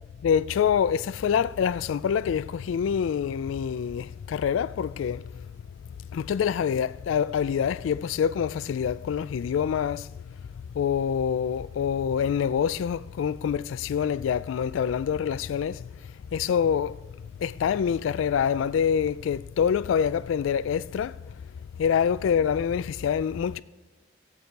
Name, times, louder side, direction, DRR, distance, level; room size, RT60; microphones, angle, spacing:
voice 1, 0.2-5.2 6.1-10.1 10.7-15.9 16.3-17.0 17.4-21.2 21.8-23.6, left 7 dB, 75° left, 0.3 m, -26 dB
18.0 x 6.9 x 4.6 m
head